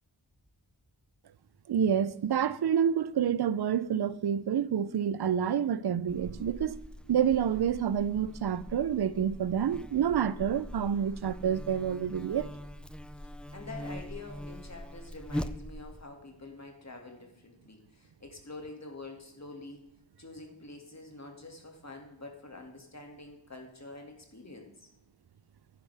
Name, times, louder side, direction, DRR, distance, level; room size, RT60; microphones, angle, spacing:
voice 1, 1.7-12.5, right 8 dB, 55° right, 0.6 m, -28 dB
Buzz, 6.1-16.0, left 1 dB, ahead, 0.3 m, -42 dB
voice 2, 13.5-19.9 20.2-24.9, left 2 dB, 35° left, 2.2 m, -46 dB
11.0 x 9.7 x 3.4 m
wide cardioid pair, 50°, 46 cm